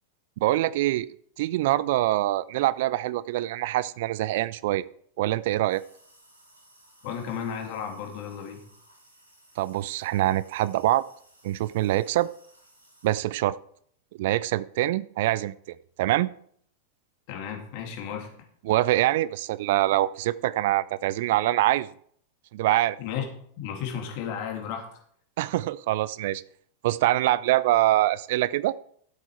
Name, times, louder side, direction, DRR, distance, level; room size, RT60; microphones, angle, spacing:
voice 1, 0.4-1.1 1.4-4.8 5.2-5.8 9.6-11.1 11.4-12.3 13.0-13.6 14.2-15.5 16.0-16.3 18.7-21.9 22.5-23.0 25.4-26.4 26.8-28.8, right 15 dB, 50° right, 19 dB, 0.4 m, -24 dB
sound 1, 5.7-13.1, right 1 dB, 80° right, 3.9 m, -58 dB
voice 2, 7.0-8.6 17.3-18.3 23.0-23.3 23.6-25.0, left 8 dB, 45° left, 3 dB, 2.7 m, -34 dB
13.0 x 8.0 x 4.7 m, 0.63 s
figure-of-eight pair, 90°, 0 cm